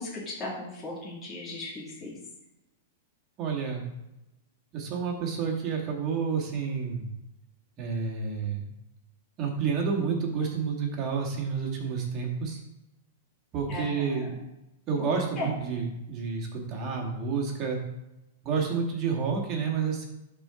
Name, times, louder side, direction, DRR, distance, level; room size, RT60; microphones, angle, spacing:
voice 1, 0.0-2.2 13.7-14.4 15.0-15.1 15.4-15.5, left 2 dB, 20° left, -6 dB, 2.5 m, -37 dB
voice 2, 3.4-3.9 4.7-7.1 7.8-8.6 9.4-12.6 13.5-14.3 14.9-17.8 18.4-20.1, right 5 dB, 30° right, -1 dB, 2.1 m, -29 dB
12.0 x 4.6 x 3.8 m, 0.92 s
hypercardioid pair, 150°, 0 cm